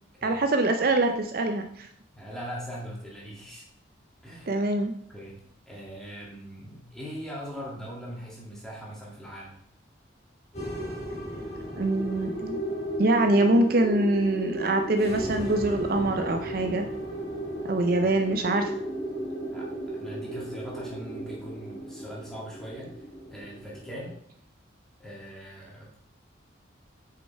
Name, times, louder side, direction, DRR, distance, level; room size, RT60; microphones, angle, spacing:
voice 1, 0.2-1.9 4.5-4.9 11.8-12.6 13.0-16.9 17.7-18.7, right 2 dB, 50° right, 6 dB, 0.5 m, -24 dB
voice 2, 2.1-3.7 4.2-4.5 5.1-5.3 5.7-9.6 18.0-18.1 19.5-22.9 23.3-24.2 25.0-26.0, equal, ahead, -5 dB, 2.0 m, -41 dB
sound 1, 10.5-24.1, right 1 dB, 35° left, 2.4 m, -34 dB
6.4 x 5.4 x 4.5 m, 0.67 s
head